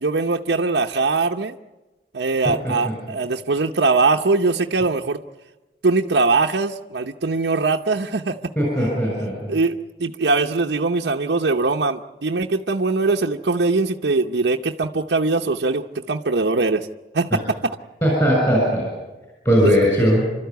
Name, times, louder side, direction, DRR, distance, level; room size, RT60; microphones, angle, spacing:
voice 1, 0.0-1.6 2.1-5.2 5.8-8.5 9.5-16.9 17.1-17.7, right 3 dB, 70° right, 2 dB, 0.8 m, -21 dB
voice 2, 8.6-9.5 18.0-18.9 19.4-20.3, equal, 20° left, -2 dB, 6.4 m, -18 dB
29.0 x 13.0 x 9.4 m, 1.1 s
head